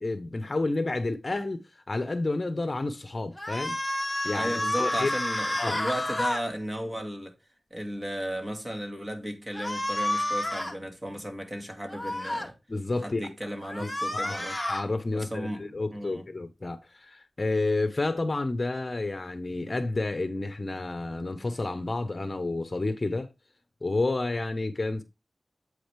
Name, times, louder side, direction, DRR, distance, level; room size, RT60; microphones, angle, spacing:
voice 1, 0.0-3.8 4.2-4.5 4.8-5.1 5.6-5.8 12.7-13.3 13.8-23.3 23.8-25.0, left 2 dB, 35° left, 0.9 m, -30 dB
sound 1, 3.4-6.4 9.5-10.8 11.9-12.5 13.6-14.8, left 1 dB, 5° left, 1.5 m, -30 dB
voice 2, 4.3-7.3 7.7-12.6 13.0-14.6 15.1-16.3, equal, 25° right, 2.0 m, -35 dB
8.1 x 5.0 x 3.3 m
wide cardioid pair, 105°, 0 cm